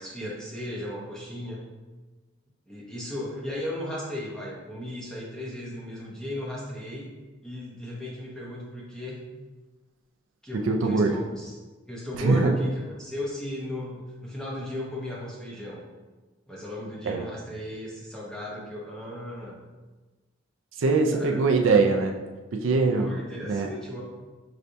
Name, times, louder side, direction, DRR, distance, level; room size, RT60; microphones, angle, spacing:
voice 1, 0.0-1.6 2.7-7.1 7.4-9.2 10.4-11.6 11.9-15.8 16.5-19.6 21.1-21.4 22.9-24.0, left 1 dB, 5° left, -5 dB, 0.8 m, -36 dB
voice 2, 10.7-11.2 12.2-12.5 17.0-17.2 20.8-22.1 22.5-23.2 23.5-23.7, right 4 dB, 80° right, 3 dB, 0.5 m, -22 dB
5.6 x 3.3 x 2.6 m, 1.2 s
head